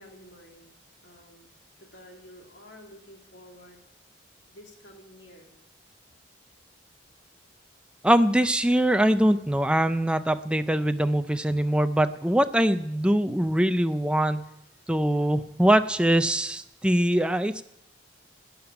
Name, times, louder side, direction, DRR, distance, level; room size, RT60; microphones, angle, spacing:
voice 1, 0.0-5.5, equal, 60° left, 1 dB, 2.5 m, -51 dB
voice 2, 8.0-14.5 14.9-17.6, right 1 dB, 5° right, 10 dB, 0.4 m, -23 dB
12.0 x 8.8 x 9.8 m, 0.88 s
head